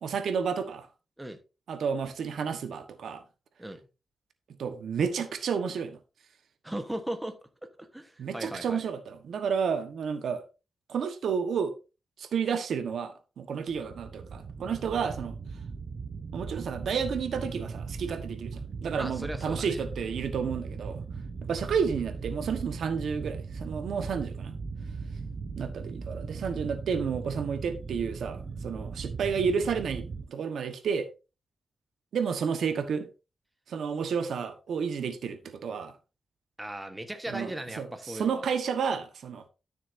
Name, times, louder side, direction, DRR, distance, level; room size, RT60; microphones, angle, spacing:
voice 1, 0.0-0.9 1.7-3.2 4.6-6.0 8.2-10.4 10.9-11.7 12.2-15.4 16.3-21.0 21.4-24.5 25.6-31.1 32.1-33.1 33.7-35.9 37.3-39.4, right 6 dB, 75° right, 1.3 m, -31 dB
voice 2, 6.6-7.3 7.8-8.8 19.0-19.8 36.6-38.4, right 1 dB, 10° right, 1.2 m, -37 dB
sound 1, 13.7-30.2, right 4 dB, 45° right, 0.8 m, -38 dB
12.5 x 6.9 x 2.7 m
wide cardioid pair, 125°, 0 cm